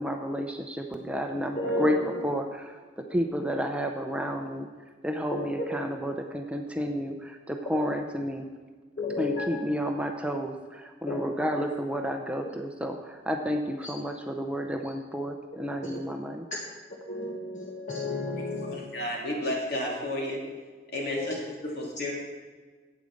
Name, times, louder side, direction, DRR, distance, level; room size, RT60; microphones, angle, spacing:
voice 1, 0.0-2.0 2.2-4.7 5.0-8.5 9.2-16.5, equal, 5° right, 3 dB, 0.6 m, -31 dB
voice 2, 1.3-2.3 5.3-5.4 9.0-9.4 11.1-11.2 15.9-16.0 17.1-18.8 21.1-21.3, left 1 dB, 45° left, -3 dB, 1.3 m, -32 dB
voice 3, 18.5-20.4 20.9-22.1, left 1 dB, 60° left, -2 dB, 2.6 m, -32 dB
9.1 x 8.4 x 6.4 m, 1.4 s
head